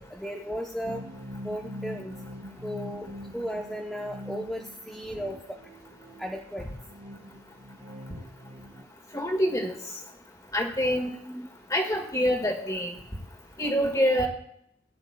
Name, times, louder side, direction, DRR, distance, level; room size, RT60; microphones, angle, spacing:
voice 1, 0.1-1.0 1.4-2.2 2.6-3.1 3.3-5.4 6.2-6.7 11.3-11.5, equal, ahead, 0 dB, 0.6 m, -35 dB
sound 1, 0.8-8.8, equal, 80° right, 3.2 m, -43 dB
voice 2, 9.1-9.7 10.5-11.1 11.7-12.9 13.6-14.3, equal, 20° left, 3 dB, 1.7 m, -25 dB
17.5 x 10.5 x 2.2 m, 0.71 s
head